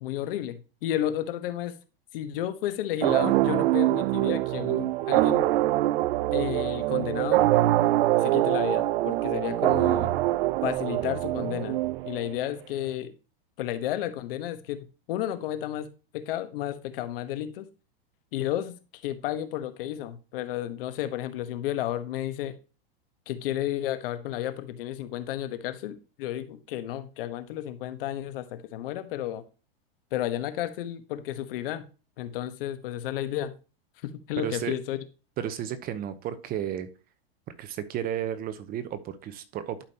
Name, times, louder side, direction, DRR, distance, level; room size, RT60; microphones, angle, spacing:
voice 1, 0.0-1.8 2.1-5.5 6.3-7.5 8.2-10.2 10.6-13.1 13.6-15.9 16.1-17.7 18.3-22.5 23.3-29.4 30.1-31.8 32.2-33.5 34.0-35.0, left 12 dB, 65° left, 1.2 m, -32 dB
sound 1, 3.0-12.5, right 16 dB, 70° right, 0.5 m, -24 dB
voice 2, 34.4-34.7 35.4-36.9 37.6-39.8, right 10 dB, 30° right, 0.8 m, -33 dB
11.5 x 5.2 x 2.9 m
supercardioid pair, 135°, 30 cm